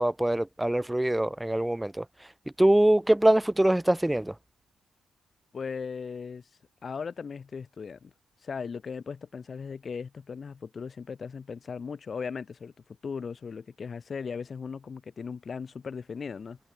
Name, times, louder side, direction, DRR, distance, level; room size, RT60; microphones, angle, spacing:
voice 1, 0.0-2.0 2.6-4.3, right 1 dB, 10° right, 1.5 m, -23 dB
voice 2, 5.5-6.5 6.8-8.1 8.4-12.7 13.0-16.6, left 5 dB, 40° left, 4.7 m, -37 dB
cardioid pair, 90°, 0 cm